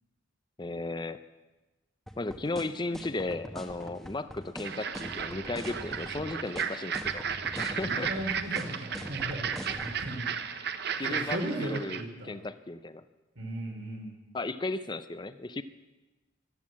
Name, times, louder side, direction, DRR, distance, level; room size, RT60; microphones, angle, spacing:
voice 1, 0.6-1.2 2.2-7.3 7.6-8.1 10.8-12.0 12.3-13.0 14.3-15.6, left 2 dB, 20° left, 12 dB, 0.5 m, -35 dB
sound 1, 2.1-10.0, equal, ahead, 1.1 m, -42 dB
sound 2, 4.6-12.0, right 7 dB, 55° right, 0.8 m, -34 dB
voice 2, 7.7-10.3 11.1-12.4 13.3-14.1, right 1 dB, 75° right, -3 dB, 3.0 m, -37 dB
14.5 x 12.0 x 7.5 m, 1.1 s
head